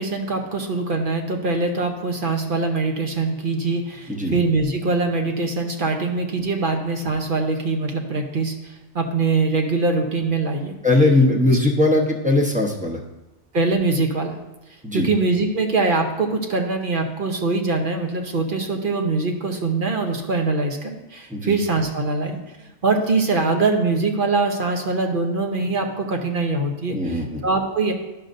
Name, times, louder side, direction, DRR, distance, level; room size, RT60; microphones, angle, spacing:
voice 1, 0.0-10.7 13.5-14.4 14.9-27.9, right 3 dB, 50° right, 4 dB, 0.9 m, -23 dB
voice 2, 10.8-13.0 14.8-15.1 21.3-21.5 26.9-27.4, left 2 dB, 10° right, -1 dB, 0.7 m, -19 dB
11.0 x 6.4 x 2.6 m, 1.0 s
omnidirectional pair, 1.2 m